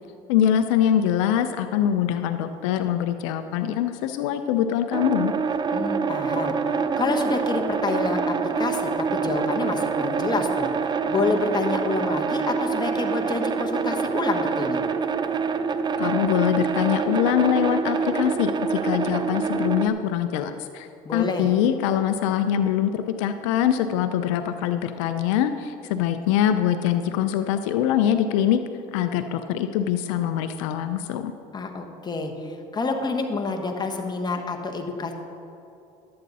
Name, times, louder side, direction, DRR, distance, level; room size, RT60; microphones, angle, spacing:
voice 1, 0.3-5.3 16.0-28.6 28.9-31.3, left 10 dB, 85° left, 9 dB, 0.5 m, -23 dB
sound 1, 4.9-19.9, right 5 dB, 30° right, 0.5 m, -26 dB
voice 2, 5.7-6.5 7.0-10.7 11.1-14.8 21.0-21.5 31.5-35.1, left 3 dB, 25° left, 3 dB, 1.2 m, -28 dB
11.5 x 8.6 x 4.0 m, 2.8 s
supercardioid pair, 90°, 16 cm